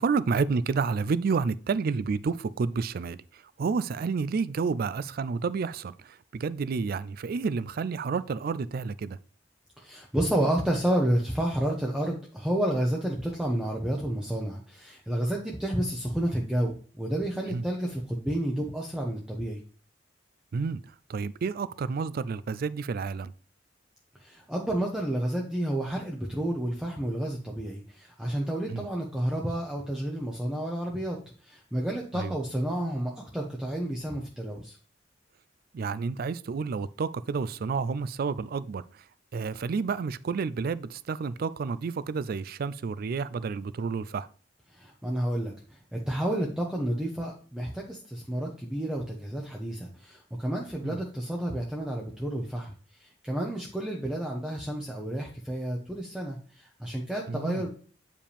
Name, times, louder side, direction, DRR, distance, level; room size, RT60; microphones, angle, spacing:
voice 1, 0.0-9.2 17.5-17.6 20.5-20.8 21.1-23.3 28.7-28.9 32.1-32.4 35.7-38.8 39.3-44.3 50.8-51.0 57.3-57.7, right 5 dB, 55° right, 0.4 m, -30 dB
voice 2, 9.8-19.6 24.2-31.2 31.4-34.8 44.7-52.7 53.0-57.7, right 1 dB, 5° right, 0.8 m, -30 dB
8.9 x 5.0 x 3.4 m
head